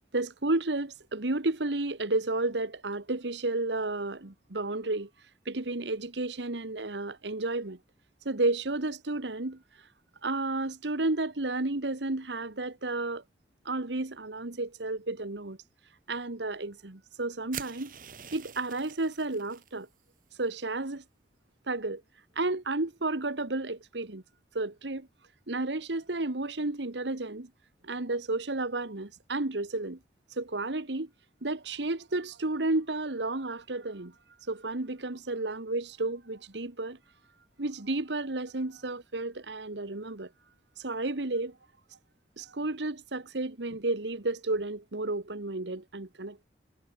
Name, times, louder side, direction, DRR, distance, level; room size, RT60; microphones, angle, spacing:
voice 1, 0.1-5.1 5.4-7.8 8.2-9.6 10.2-13.2 13.6-15.6 16.1-17.9 18.3-19.9 20.4-21.0 21.7-22.0 22.3-24.2 24.5-25.1 25.5-27.5 27.8-30.0 30.4-31.1 31.4-34.1 34.5-37.0 37.6-40.3 40.8-41.5 42.4-46.4, right 2 dB, 90° right, 1.6 m, -32 dB
sound 1, 17.5-19.7, right 8 dB, 50° right, 2.5 m, -44 dB
head